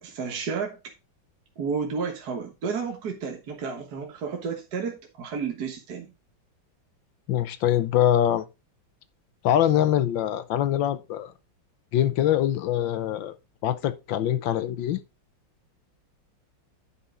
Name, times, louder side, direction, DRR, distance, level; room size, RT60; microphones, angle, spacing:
voice 1, 0.0-0.9 1.6-6.1, right 5 dB, 55° right, 1.8 m, -32 dB
voice 2, 7.3-8.5 9.4-11.3 11.9-13.3 13.6-15.0, left 11 dB, 75° left, 1.5 m, -23 dB
10.0 x 5.6 x 3.8 m
omnidirectional pair, 2.2 m